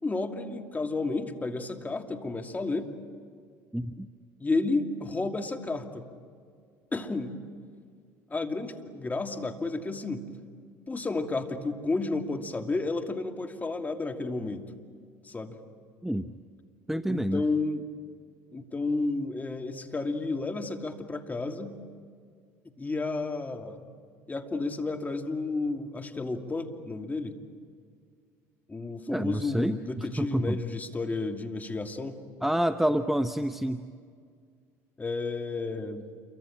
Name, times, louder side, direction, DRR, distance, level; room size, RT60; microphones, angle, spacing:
voice 1, 0.0-2.9 4.4-6.0 6.9-7.3 8.3-10.3 10.9-14.7 15.2-15.6 17.1-17.8 18.5-21.8 22.8-23.9 24.3-27.3 28.7-32.2 35.0-36.1, left 3 dB, 20° left, 5 dB, 2.7 m, -31 dB
voice 2, 3.7-4.1 16.0-16.3 16.9-17.4 29.1-30.6 32.4-33.9, equal, 5° right, 9 dB, 0.9 m, -28 dB
28.0 x 24.0 x 8.9 m, 2.1 s
hypercardioid pair, 70°, 8 cm